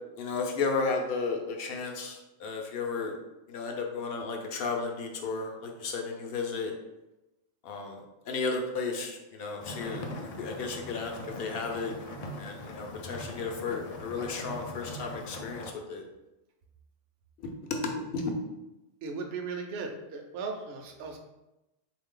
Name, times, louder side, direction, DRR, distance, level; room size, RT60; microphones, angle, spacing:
voice 1, 0.2-3.1 3.5-6.7 7.6-11.9 12.4-15.6 15.9-16.1 17.4-18.3, left 4 dB, 60° left, 3 dB, 0.8 m, -34 dB
sound 1, 9.6-15.7, left 1 dB, 80° left, 0.3 m, -41 dB
voice 2, 19.0-21.2, right 4 dB, 65° right, 3 dB, 0.8 m, -37 dB
3.5 x 2.6 x 3.6 m, 0.96 s
omnidirectional pair, 1.2 m